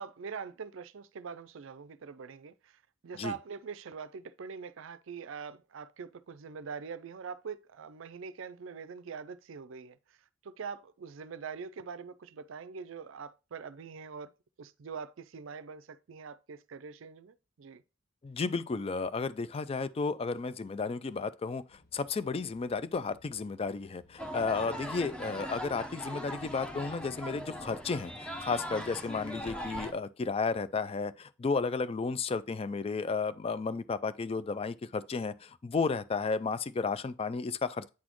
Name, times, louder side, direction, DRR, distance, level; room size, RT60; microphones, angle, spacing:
voice 1, 0.0-10.2 10.4-14.3 14.6-17.8, right 6 dB, 65° right, 0.4 m, -43 dB
voice 2, 18.2-37.9, left 4 dB, 30° left, 0.3 m, -33 dB
sound 1, 21.7-29.8, left 1 dB, 45° left, 1.3 m, -65 dB
sound 2, 24.2-29.9, equal, 5° left, 0.8 m, -40 dB
8.5 x 4.2 x 3.0 m
head